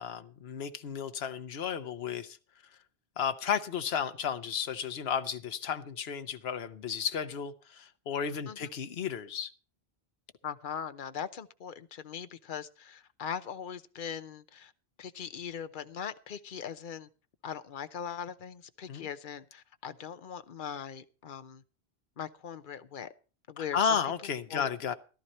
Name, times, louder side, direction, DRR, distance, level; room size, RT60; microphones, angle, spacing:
voice 1, 0.0-2.4 3.2-9.5 18.9-19.1 23.6-24.9, left 7 dB, 75° left, 1.1 m, -33 dB
voice 2, 10.4-14.7 15.0-17.1 17.4-21.6 22.2-23.1 23.5-23.9 24.5-24.7, left 8 dB, 55° left, 0.9 m, -40 dB
14.5 x 12.5 x 4.3 m
omnidirectional pair, 1.1 m